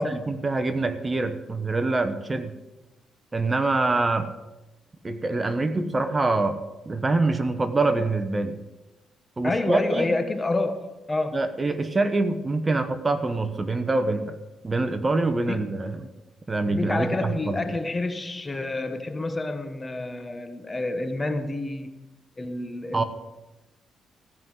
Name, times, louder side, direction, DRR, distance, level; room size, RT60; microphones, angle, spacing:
voice 1, 0.0-2.5 3.3-4.3 5.0-6.6 6.8-8.6 9.4-10.1 11.3-14.4 14.6-16.1 16.5-17.7 22.9-23.0, right 3 dB, 25° right, 10 dB, 1.1 m, -25 dB
voice 2, 9.4-11.4 15.4-15.7 16.7-22.1 22.4-23.0, left 2 dB, 25° left, 9 dB, 1.1 m, -28 dB
15.0 x 5.5 x 7.9 m, 1.1 s
cardioid pair, 75°, 0 cm